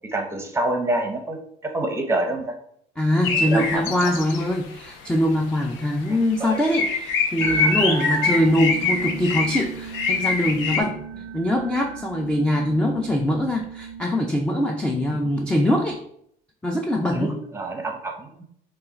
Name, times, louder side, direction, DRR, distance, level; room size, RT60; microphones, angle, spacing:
voice 1, 0.0-2.5 3.4-4.1 6.4-6.6 17.1-18.3, right 2 dB, 15° right, 4 dB, 0.8 m, -27 dB
voice 2, 3.0-11.0 11.3-16.0 16.6-17.4, left 1 dB, 5° left, 2 dB, 0.4 m, -23 dB
sound 1, 3.2-4.8 5.0-5.1 5.6-5.8 6.1-10.8, left 4 dB, 75° left, 0.7 m, -24 dB
sound 2, 7.4-14.0, right 9 dB, 90° right, 0.4 m, -35 dB
5.5 x 2.4 x 3.9 m, 0.70 s
cardioid pair, 130°, 20 cm